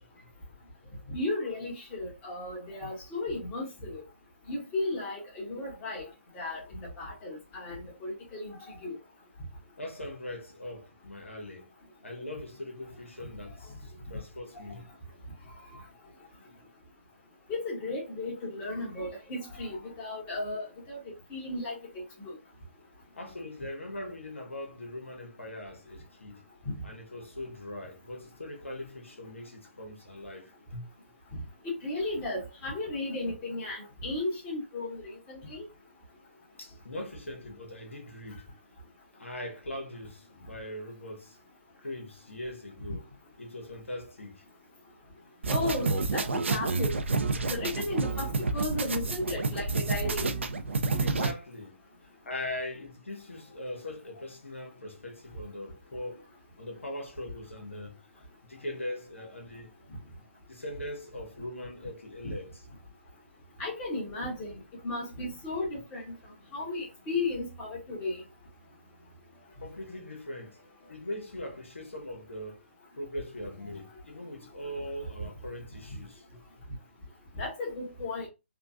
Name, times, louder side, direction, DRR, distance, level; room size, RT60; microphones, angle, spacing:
voice 1, 1.1-4.0 4.5-6.1 6.3-9.0 14.5-14.6 15.7-15.8 17.5-21.0 21.3-22.3 26.6-26.7 31.8-35.6 45.5-46.9 47.5-50.3 62.2-62.3 63.6-64.5 64.8-66.0 66.5-68.2 77.3-78.3, left 2 dB, 25° left, 1.3 m, -35 dB
voice 2, 9.8-11.7 12.0-14.9 23.2-26.4 26.8-30.8 36.6-38.5 39.1-41.4 41.8-43.1 43.4-44.4 47.3-47.4 51.0-56.3 56.6-58.0 58.5-59.7 60.5-62.6 69.6-70.6 70.9-72.6 72.9-76.4, left 1 dB, 80° left, 1.0 m, -41 dB
sound 1, 45.4-51.3, right 3 dB, 70° right, 0.5 m, -29 dB
3.7 x 2.3 x 2.4 m
figure-of-eight pair, 140°, 7 cm